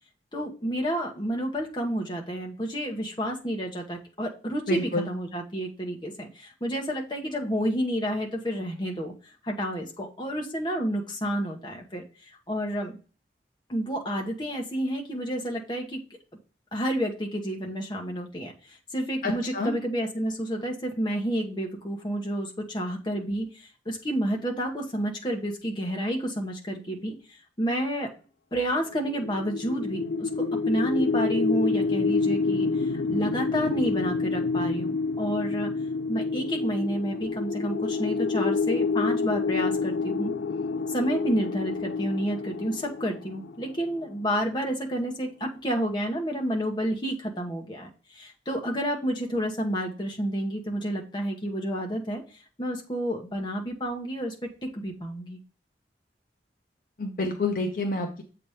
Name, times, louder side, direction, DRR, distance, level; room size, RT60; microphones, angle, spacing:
voice 1, 0.3-9.1 9.4-12.0 12.5-12.9 13.7-16.0 16.7-28.1 28.5-35.7 36.1-40.3 40.9-52.2 52.6-55.4, equal, 25° left, 0 dB, 1.1 m, -30 dB
voice 2, 4.7-5.1 19.2-19.7 57.0-58.2, left 2 dB, 50° left, 3 dB, 0.8 m, -28 dB
sound 1, 29.0-44.0, left 4 dB, 75° left, 0.4 m, -28 dB
7.7 x 3.0 x 4.9 m, 0.36 s
head